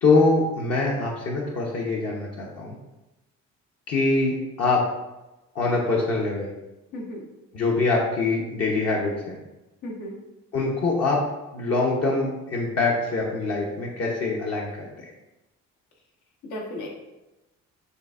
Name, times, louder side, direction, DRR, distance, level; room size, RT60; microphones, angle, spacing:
voice 1, 0.0-2.8 3.9-4.8 5.5-6.5 7.5-9.4 10.5-11.2 11.5-14.9, left 3 dB, 55° left, -3 dB, 0.8 m, -24 dB
voice 2, 6.9-7.2 9.8-10.2 16.5-16.9, left 1 dB, 80° left, -2 dB, 1.1 m, -34 dB
6.4 x 2.6 x 2.4 m, 1.0 s
cardioid pair, 90°, 30 cm